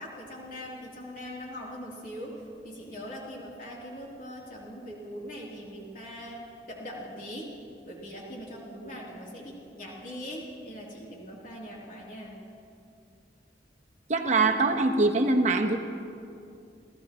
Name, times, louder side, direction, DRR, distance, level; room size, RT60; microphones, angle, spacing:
voice 1, 0.0-6.4 6.7-7.5 7.9-12.4, equal, 50° left, -4 dB, 3.2 m, -41 dB
voice 2, 14.1-15.8, right 3 dB, 40° right, 4 dB, 1.0 m, -23 dB
28.5 x 15.5 x 3.0 m, 2.6 s
head